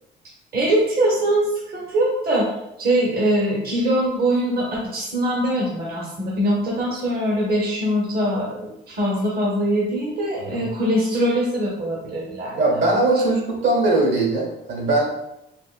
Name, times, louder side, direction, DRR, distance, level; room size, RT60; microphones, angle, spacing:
voice 1, 0.5-2.5 2.8-12.6, right 1 dB, 50° right, -4 dB, 0.8 m, -22 dB
voice 2, 12.6-15.1, right 2 dB, 75° right, -2 dB, 1.2 m, -20 dB
3.5 x 2.5 x 2.4 m, 0.86 s
cardioid pair, 90°, 20 cm